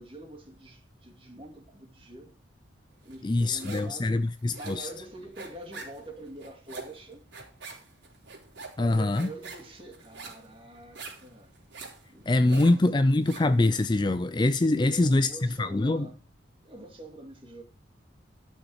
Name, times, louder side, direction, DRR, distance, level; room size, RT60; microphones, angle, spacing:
voice 1, 0.0-2.3 3.0-4.3 4.5-7.2 8.8-11.5 12.1-12.7 14.8-16.2 16.6-17.6, right 2 dB, 30° right, 2.5 m, -45 dB
sound 1, 3.1-4.0 4.3-13.6, right 3 dB, 75° right, 3.9 m, -45 dB
voice 2, 3.2-4.9 8.8-9.3 12.3-15.3 15.6-16.1, left 2 dB, 25° left, 0.4 m, -24 dB
12.0 x 6.6 x 4.7 m
head